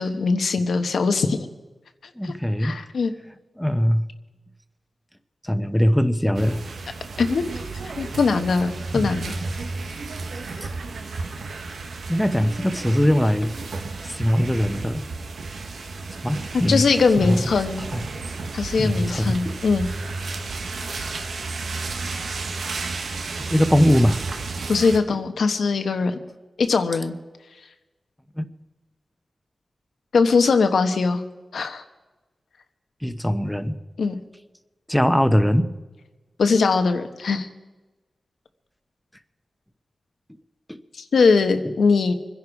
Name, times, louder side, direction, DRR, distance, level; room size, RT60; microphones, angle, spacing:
voice 1, 0.0-1.5 2.2-2.3 2.6-3.1 7.2-7.5 8.0-9.4 16.7-17.8 18.5-19.9 24.7-26.2 26.6-27.1 30.1-31.2 31.5-31.8 34.0-34.2 36.4-37.5 41.0-42.1, left 4 dB, 85° left, 7 dB, 1.2 m, -21 dB
voice 2, 2.2-2.8 3.6-4.1 5.4-6.6 8.9-9.1 10.6-10.7 12.1-13.5 14.0-15.0 16.2-16.8 17.2-17.4 17.9-18.0 18.8-19.6 20.8-20.9 23.5-24.2 28.4-28.5 33.0-33.8 34.9-35.7 40.7-40.8 41.6-41.7, equal, 5° left, 10 dB, 1.0 m, -21 dB
sound 1, 6.3-25.0, right 3 dB, 85° right, 1.3 m, -32 dB
24.5 x 10.5 x 4.8 m, 1.2 s
cardioid pair, 60°, 0 cm